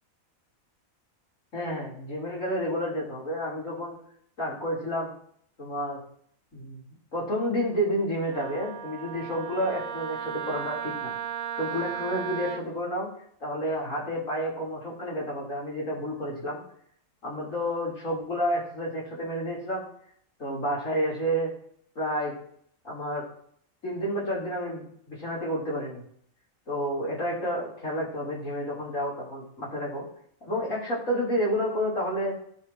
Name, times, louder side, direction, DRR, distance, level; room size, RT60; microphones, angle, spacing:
voice 1, 1.5-4.0 4.4-5.1 5.6-6.0 6.5-6.8 7.1-11.1 11.5-13.1 13.4-16.6 17.2-19.9 20.4-21.5 21.9-22.3 22.8-23.2 23.8-26.0 26.7-30.1 30.4-32.4, equal, 70° left, -5 dB, 4.7 m, -30 dB
Wind instrument woodwind instrument, 8.3-12.6, right 9 dB, 85° right, 1.3 m, -35 dB
16.5 x 7.4 x 3.1 m, 0.64 s
omnidirectional pair, 1.4 m